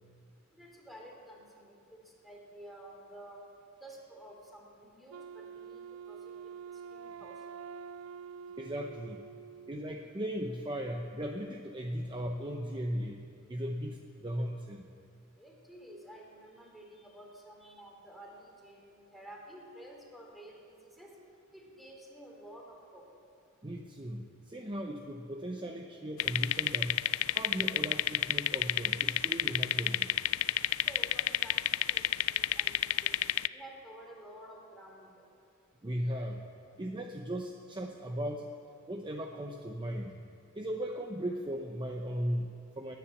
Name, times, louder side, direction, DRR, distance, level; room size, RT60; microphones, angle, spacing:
voice 1, 0.5-3.4 3.8-5.8 6.1-6.5 6.9-7.4 15.4-21.1 21.5-23.0 30.7-32.0 32.3-33.1 33.5-35.2, right 1 dB, ahead, -2 dB, 3.0 m, -51 dB
Wind instrument woodwind instrument, 5.1-10.1, right 6 dB, 70° right, 0.3 m, -47 dB
voice 2, 8.6-9.3 9.7-14.9 23.6-27.0 27.3-30.1 35.8-36.5 36.8-38.5 38.9-40.2 40.6-43.0, equal, 25° right, 3 dB, 0.7 m, -37 dB
sound 1, 26.2-33.5, left 13 dB, 85° left, 0.4 m, -30 dB
19.5 x 10.0 x 7.2 m, 2.6 s
head